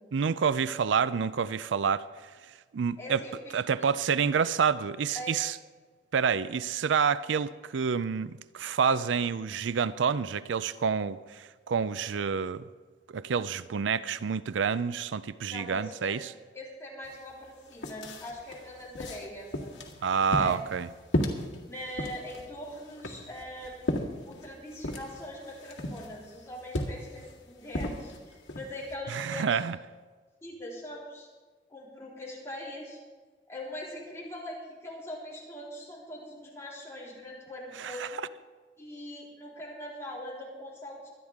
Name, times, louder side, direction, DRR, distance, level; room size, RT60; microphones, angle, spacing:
voice 1, 0.1-2.1 2.7-3.2 3.5-5.5 6.1-12.7 13.1-16.3 20.0-20.9 29.1-29.8 37.8-38.1, right 6 dB, 90° right, 0.4 m, -28 dB
voice 2, 3.0-3.9 4.3-4.4 5.1-5.3 15.5-16.1 16.5-19.7 20.4-20.5 21.7-24.0 24.2-29.6 30.4-31.3 31.7-33.0 33.5-38.2 38.8-41.1, left 1 dB, 15° left, 4.0 m, -42 dB
sound 1, 17.0-17.1 17.5-29.0, left 1 dB, 85° left, 2.0 m, -36 dB
24.0 x 9.7 x 3.6 m
head